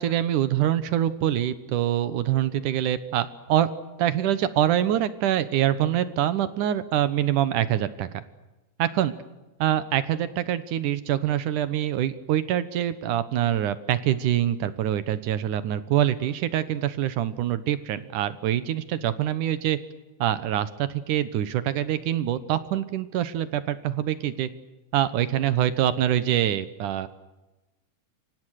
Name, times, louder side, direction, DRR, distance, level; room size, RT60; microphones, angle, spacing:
voice 1, 0.0-3.7 4.0-8.2 8.8-9.1 9.6-19.8 20.2-24.5 24.9-27.1, right 11 dB, 70° right, 14 dB, 2.5 m, -25 dB
29.0 x 25.0 x 6.6 m, 1.1 s
omnidirectional pair, 4.1 m